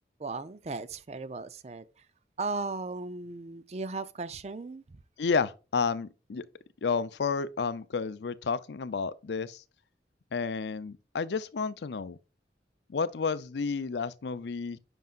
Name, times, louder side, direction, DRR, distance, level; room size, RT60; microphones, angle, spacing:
voice 1, 0.2-2.1 2.4-5.0, right 3 dB, 35° right, 0.5 m, -37 dB
voice 2, 5.2-6.4 6.8-9.6 10.3-12.2 12.9-14.8, left 5 dB, 75° left, 0.5 m, -31 dB
9.3 x 5.4 x 2.4 m
head